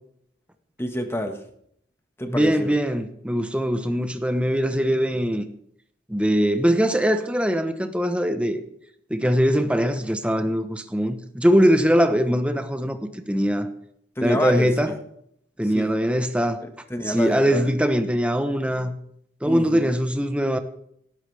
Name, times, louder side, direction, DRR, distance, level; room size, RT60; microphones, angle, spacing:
voice 1, 0.8-1.4 2.2-2.7 14.1-15.0 15.6-15.9 16.6-17.7 19.4-19.9, equal, 15° left, 5 dB, 1.5 m, -28 dB
voice 2, 2.3-5.4 6.1-8.6 9.1-13.0 13.3-13.7 14.2-14.9 15.6-16.6 17.1-18.9 19.4-20.6, equal, 5° right, 7 dB, 1.0 m, -22 dB
18.5 x 13.0 x 3.5 m, 0.70 s
head